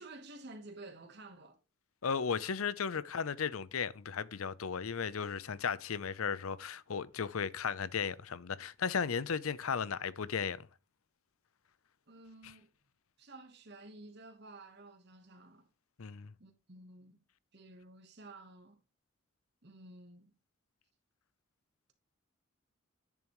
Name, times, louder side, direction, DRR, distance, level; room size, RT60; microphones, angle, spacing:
voice 1, 0.0-1.6 2.9-3.1 12.1-12.7 13.2-15.7 16.4-17.2 17.5-18.8 19.6-20.3, right 2 dB, 50° right, 1.2 m, -52 dB
voice 2, 2.0-10.7 16.0-16.3, left 6 dB, 80° left, 0.6 m, -35 dB
10.0 x 7.1 x 3.0 m
head